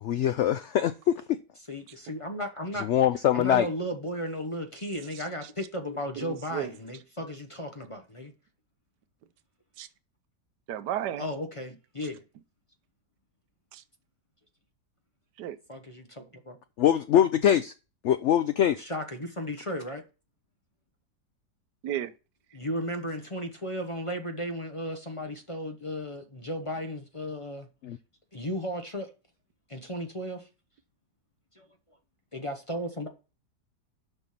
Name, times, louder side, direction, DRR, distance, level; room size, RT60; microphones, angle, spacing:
voice 1, 0.0-1.1 2.8-3.7 16.8-17.7 18.0-18.8 27.8-28.0, left 10 dB, 90° left, 0.6 m, -23 dB
voice 2, 1.7-2.9 3.3-8.3 11.2-12.2 15.7-16.6 18.8-20.0 22.5-27.7 28.3-29.1 29.7-30.5 31.6-31.7 32.3-33.1, equal, 25° left, 0.7 m, -35 dB
voice 3, 6.2-6.7 9.8-9.9 10.7-11.2 13.7-13.8 15.4-15.6 21.8-22.1, right 11 dB, 85° right, 1.3 m, -33 dB
6.8 x 5.6 x 5.9 m
omnidirectional pair, 1.8 m